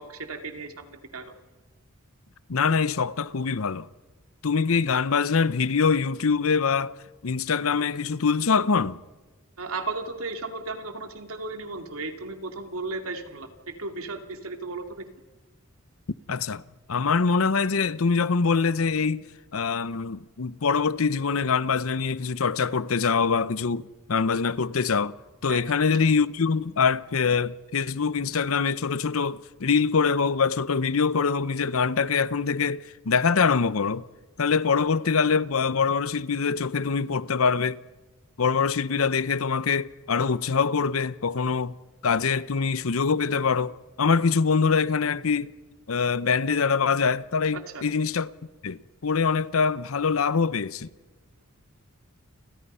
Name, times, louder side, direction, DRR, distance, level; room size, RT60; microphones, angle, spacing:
voice 1, 0.0-1.3 9.6-15.0 25.5-25.7 47.5-47.8, right 3 dB, 85° right, 2.5 m, -35 dB
voice 2, 2.5-3.9 4.4-6.9 7.2-9.0 16.3-16.6 16.9-19.2 19.5-25.2 25.4-34.0 34.4-37.8 38.4-41.7 42.0-45.5 45.9-48.3 48.6-50.9, left 5 dB, 75° left, 0.7 m, -24 dB
30.0 x 24.0 x 5.6 m
head